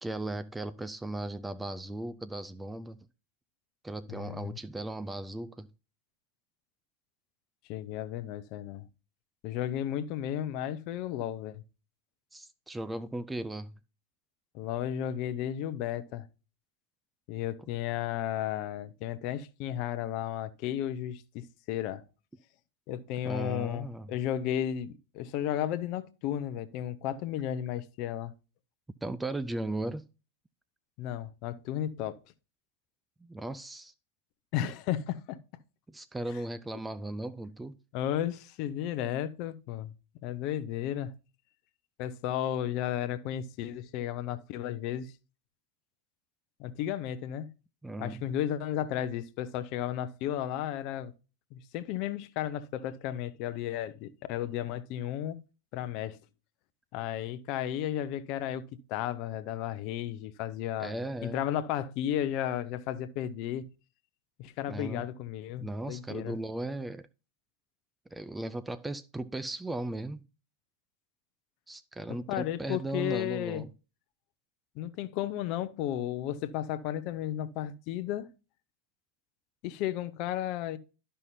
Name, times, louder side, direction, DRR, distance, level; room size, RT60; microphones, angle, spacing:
voice 1, 0.0-3.1 3.8-5.7 12.3-13.7 23.2-24.1 29.0-30.0 33.2-33.9 35.9-37.8 47.8-48.3 60.8-61.5 64.7-65.1 65.6-67.1 68.1-70.2 71.7-73.7, right 2 dB, 5° right, 0.4 m, -37 dB
voice 2, 4.1-4.6 7.7-8.8 9.4-11.6 14.5-16.2 17.3-22.0 22.9-28.3 31.0-32.2 34.5-35.4 37.9-39.9 40.2-41.2 42.0-45.1 46.6-47.5 48.0-51.1 51.5-55.4 55.7-56.2 56.9-60.9 61.2-63.7 64.4-66.4 72.3-73.6 74.8-78.3 79.6-80.8, left 11 dB, 40° left, 0.6 m, -33 dB
12.0 x 5.5 x 2.7 m
figure-of-eight pair, 90°, 0 cm